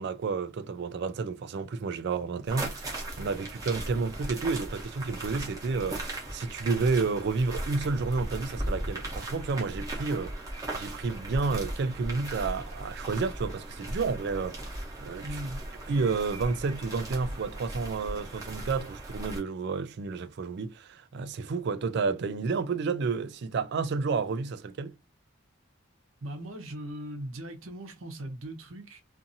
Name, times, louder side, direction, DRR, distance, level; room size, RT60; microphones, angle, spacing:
voice 1, 0.0-10.4 10.7-15.2 15.9-24.9, right 4 dB, 50° right, 0.3 m, -30 dB
sound 1, 2.5-19.4, right 1 dB, 15° right, 0.8 m, -37 dB
voice 2, 15.2-15.6 26.2-29.0, right 1 dB, 70° right, 0.8 m, -39 dB
2.6 x 2.6 x 2.6 m
head